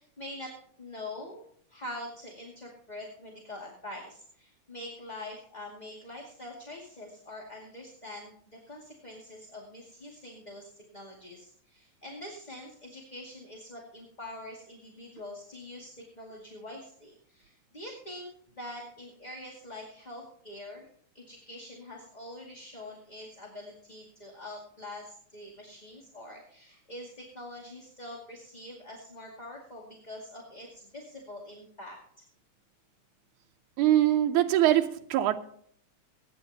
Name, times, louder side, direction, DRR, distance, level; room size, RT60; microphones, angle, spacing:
voice 1, 0.0-1.4 1.7-20.9 21.1-32.0, left 1 dB, 15° left, -2 dB, 1.9 m, -44 dB
voice 2, 33.8-35.4, right 13 dB, 85° right, 4 dB, 2.2 m, -23 dB
23.0 x 10.5 x 2.9 m, 0.62 s
omnidirectional pair, 3.4 m